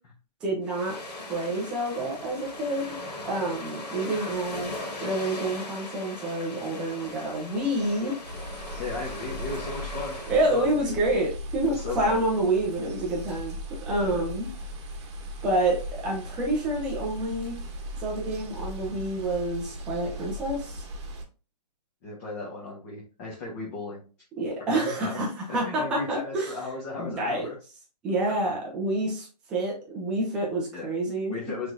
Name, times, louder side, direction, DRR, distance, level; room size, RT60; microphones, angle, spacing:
voice 1, 0.4-1.0 1.3-3.0 3.2-4.7 5.0-8.2 10.3-13.6 13.9-14.5 15.4-17.6 18.0-20.9 24.4-26.5 27.0-27.5 28.0-31.5, right 1 dB, 5° right, -2 dB, 0.3 m, -28 dB
sound 1, 0.6-10.6, left 1 dB, 70° left, 1.8 m, -39 dB
sound 2, 8.2-21.2, equal, 45° right, 1.0 m, -38 dB
voice 2, 8.8-11.0 11.6-12.2 14.0-14.2 22.0-24.0 24.7-25.2 25.5-27.5 30.7-30.9 31.3-31.7, left 3 dB, 20° left, -3 dB, 0.9 m, -36 dB
5.8 x 3.2 x 2.6 m, 0.35 s
hypercardioid pair, 160°, 21 cm